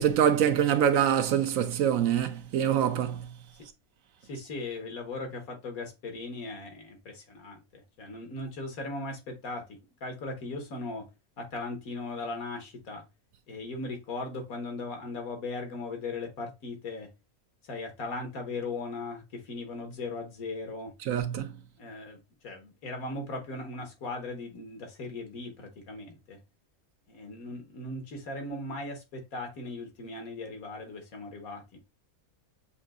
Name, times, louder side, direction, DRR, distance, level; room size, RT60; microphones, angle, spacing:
voice 1, 0.0-3.3 21.1-21.5, right 9 dB, 70° right, 1.0 m, -25 dB
voice 2, 4.3-11.1 11.4-13.0 13.5-17.1 17.6-20.9 21.8-26.4 27.1-31.8, left 3 dB, 75° left, 1.7 m, -38 dB
7.2 x 2.7 x 2.4 m
omnidirectional pair, 1.5 m